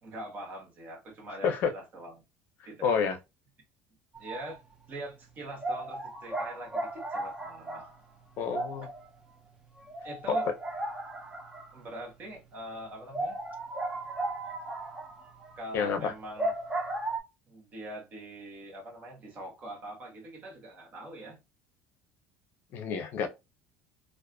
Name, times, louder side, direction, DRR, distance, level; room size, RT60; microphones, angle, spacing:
voice 1, 0.0-2.2 2.6-3.1 4.2-4.6 4.9-7.8 10.0-10.5 11.7-13.4 15.6-16.5 17.5-21.4, right 1 dB, 40° right, 1.1 m, -43 dB
voice 2, 1.3-1.7 2.8-3.2 8.4-8.9 10.3-10.4 15.7-16.1 22.7-23.3, left 6 dB, 55° left, 0.6 m, -29 dB
sound 1, 4.1-4.6 4.9-5.0 5.6-12.0 12.3-12.4 12.7-12.8 13.1-17.2, right 2 dB, 15° right, 0.5 m, -35 dB
2.4 x 2.4 x 2.3 m
cardioid pair, 130°, 4 cm